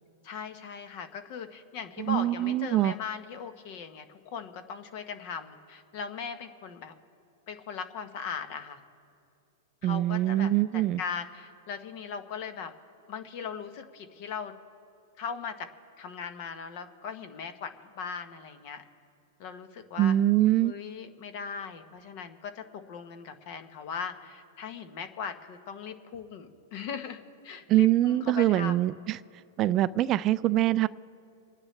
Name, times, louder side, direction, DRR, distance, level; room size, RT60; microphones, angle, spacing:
voice 1, 0.2-6.9 7.5-8.8 9.8-12.7 13.1-14.6 15.2-15.7 16.0-18.8 19.4-20.1 20.6-28.8, left 6 dB, 50° left, 9 dB, 1.2 m, -39 dB
voice 2, 2.0-2.9 9.8-11.0 20.0-20.7 27.7-29.2 29.6-30.9, right 14 dB, 35° right, 16 dB, 0.3 m, -24 dB
28.5 x 9.6 x 3.3 m, 2.5 s
hypercardioid pair, 125°, 0 cm